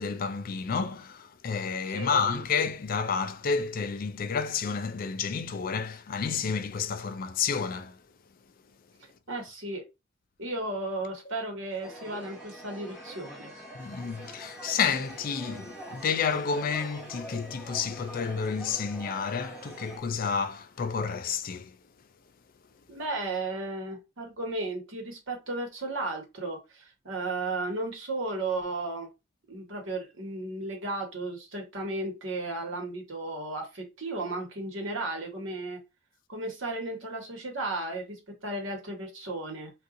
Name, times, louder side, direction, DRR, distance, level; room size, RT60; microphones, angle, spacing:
voice 1, 0.0-8.0 13.7-21.8, left 5 dB, 45° left, 0.4 m, -30 dB
voice 2, 1.9-2.4 9.3-9.8 10.4-13.5 22.9-29.1 29.5-35.8 36.3-39.7, right 2 dB, 75° right, 1.3 m, -34 dB
sound 1, 11.8-20.0, right 1 dB, 5° right, 1.5 m, -44 dB
2.6 x 2.3 x 3.7 m
head